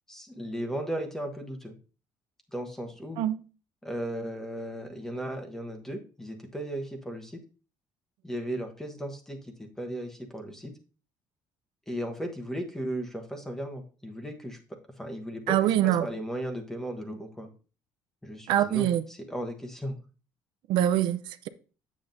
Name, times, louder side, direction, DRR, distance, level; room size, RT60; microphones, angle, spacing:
voice 1, 0.1-1.7 2.5-3.2 3.8-7.4 8.2-10.7 11.9-14.6 15.0-15.6 15.8-17.5 18.2-18.9 19.3-20.0, right 1 dB, 5° left, 1.1 m, -36 dB
voice 2, 15.5-16.1 18.5-19.0 20.7-21.5, right 12 dB, 75° right, 0.6 m, -24 dB
8.6 x 7.4 x 2.6 m
cardioid pair, 145°, 8 cm